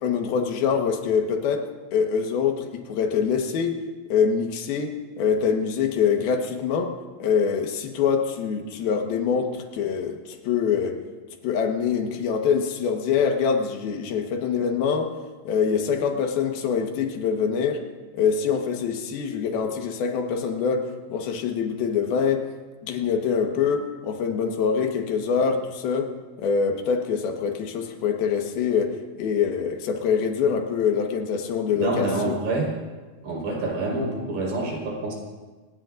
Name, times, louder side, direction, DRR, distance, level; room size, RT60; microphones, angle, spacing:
voice 1, 0.0-3.8 4.1-11.0 11.4-15.1 15.5-17.9 18.1-22.5 22.8-26.1 26.4-32.3, left 6 dB, 75° left, 4 dB, 3.2 m, -24 dB
voice 2, 31.8-32.7 33.2-35.1, right 2 dB, 75° right, -2 dB, 6.6 m, -27 dB
27.0 x 20.0 x 2.6 m, 1.3 s
omnidirectional pair, 4.5 m